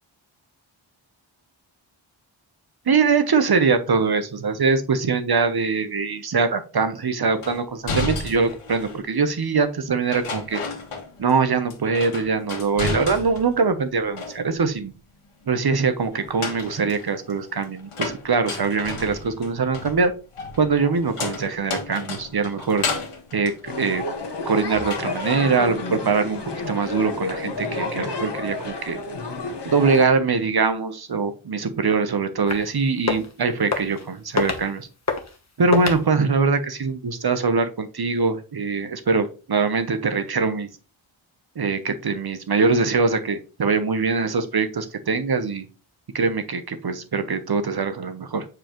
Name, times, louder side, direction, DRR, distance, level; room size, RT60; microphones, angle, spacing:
voice 1, 2.9-10.6 11.2-14.9 15.5-20.1 20.6-22.9 23.3-24.0 24.5-26.4 26.7-29.0 29.6-34.9 35.6-40.7 41.6-45.7 46.1-48.5, right 4 dB, 50° right, 9 dB, 0.9 m, -22 dB
sound 1, 7.4-9.1 10.1-11.4 11.7-13.6 13.9-14.7 16.1-24.4 24.8-25.4, left 3 dB, 85° left, 1.6 m, -32 dB
sound 2, 23.7-30.1, left 3 dB, 55° left, 1.3 m, -30 dB
sound 3, 32.5-32.7 33.0-33.3 33.7-34.1 34.4-34.7 35.1-35.4 35.7-36.0, left 4 dB, 30° left, 1.2 m, -25 dB
7.0 x 4.9 x 3.0 m, 0.34 s
wide cardioid pair, 100°, 50 cm